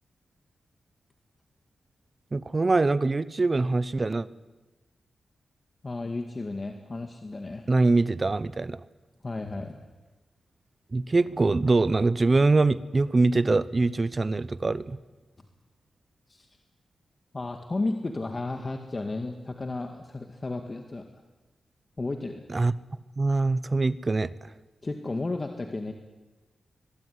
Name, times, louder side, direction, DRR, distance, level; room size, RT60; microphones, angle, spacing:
voice 1, 2.3-4.3 7.7-8.8 10.9-15.0 22.5-22.7 23.2-24.5, right 3 dB, 30° right, 17 dB, 0.9 m, -23 dB
voice 2, 5.8-7.7 9.2-9.9 16.3-16.5 17.3-21.1 22.0-22.5 24.8-25.9, left 2 dB, 30° left, 5 dB, 2.0 m, -33 dB
23.0 x 22.0 x 9.5 m, 1.1 s
wide cardioid pair, 110°, 0 cm